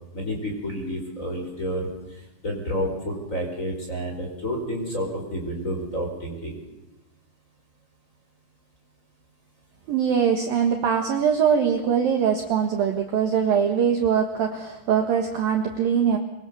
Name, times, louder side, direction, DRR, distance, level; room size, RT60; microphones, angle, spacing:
voice 1, 0.1-1.9 2.4-6.6, equal, 15° left, 1 dB, 4.6 m, -29 dB
voice 2, 9.9-16.2, right 7 dB, 65° right, 4 dB, 2.6 m, -22 dB
24.0 x 23.0 x 6.9 m, 1.0 s
omnidirectional pair, 5.8 m